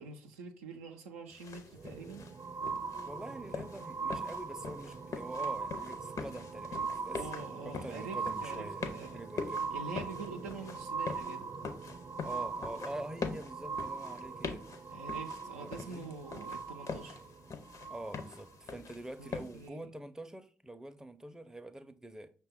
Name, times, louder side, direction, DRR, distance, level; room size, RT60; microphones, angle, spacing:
voice 1, 0.0-2.3 7.1-9.2 9.7-11.5 14.9-17.2 19.2-19.9, right 4 dB, 90° right, 0.4 m, -45 dB
sound 1, 1.3-19.7, left 5 dB, 55° left, 0.6 m, -44 dB
sound 2, 1.7-18.5 19.3-19.4, right 5 dB, 50° right, 0.6 m, -41 dB
voice 2, 3.0-9.6 12.2-14.7 15.6-16.1 17.9-22.3, right 1 dB, 10° right, 0.5 m, -45 dB
5.6 x 2.2 x 3.5 m
hypercardioid pair, 40°, 7 cm